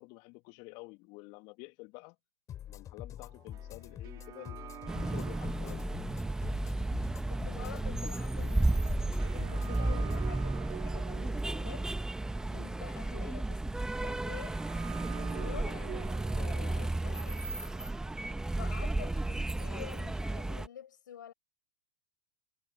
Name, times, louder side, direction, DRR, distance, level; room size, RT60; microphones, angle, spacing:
voice 1, 0.0-2.2 2.7-5.9 13.1-13.2 15.2-17.6, left 27 dB, 45° left, 1.6 m, -50 dB
sound 1, 2.5-10.2, left 11 dB, 30° left, 5.3 m, -46 dB
sound 2, 3.2-18.4, right 13 dB, 35° right, 2.6 m, -49 dB
sound 3, 4.9-20.7, right 2 dB, 5° right, 1.2 m, -33 dB
voice 2, 7.3-11.9 12.5-14.5 15.1-15.7 17.0-17.3 18.6-21.3, left 9 dB, 75° left, 6.3 m, -48 dB
hypercardioid pair, 95°, 10 cm